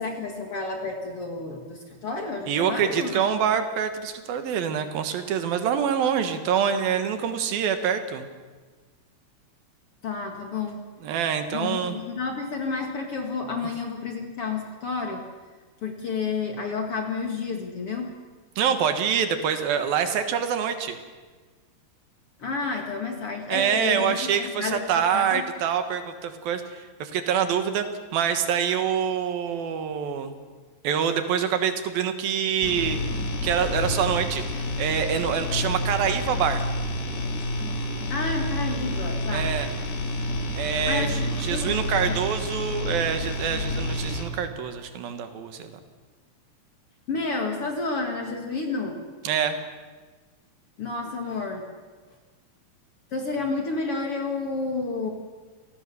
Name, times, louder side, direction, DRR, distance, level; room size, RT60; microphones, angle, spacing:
voice 1, 0.0-3.2 10.0-10.8 11.5-15.2 15.8-18.1 22.4-24.8 25.1-25.4 38.1-39.5 40.9-41.8 42.1-42.2 47.1-49.0 50.8-51.7 53.1-55.1, left 4 dB, 45° left, 3 dB, 2.1 m, -30 dB
voice 2, 2.5-8.3 11.0-12.0 18.6-21.0 23.5-27.9 28.1-30.3 30.8-33.0 33.4-36.6 39.3-39.7 40.6-45.8 49.2-49.6, right 8 dB, 70° right, 8 dB, 3.0 m, -26 dB
sound 1, 32.6-44.3, left 1 dB, 70° left, 4.5 m, -29 dB
28.0 x 18.5 x 7.0 m, 1.4 s
omnidirectional pair, 4.6 m